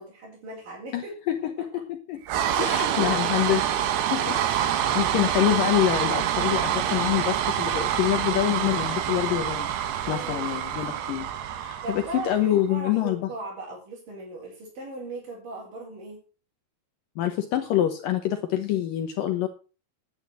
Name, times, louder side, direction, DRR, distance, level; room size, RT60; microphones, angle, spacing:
voice 1, 0.0-1.1 1.6-1.7 2.3-3.3 4.9-5.2 10.0-11.2 11.8-16.2, right 3 dB, 55° right, -6 dB, 6.1 m, -38 dB
voice 2, 0.9-2.2 2.6-3.6 4.1-4.4 4.7-9.7 10.1-11.3 11.6-13.3 17.2-19.5, left 12 dB, 70° left, 6 dB, 2.3 m, -26 dB
sound 1, 2.3-12.5, right 10 dB, 85° right, 3.3 m, -26 dB
9.9 x 9.9 x 6.1 m, 0.35 s
omnidirectional pair, 4.6 m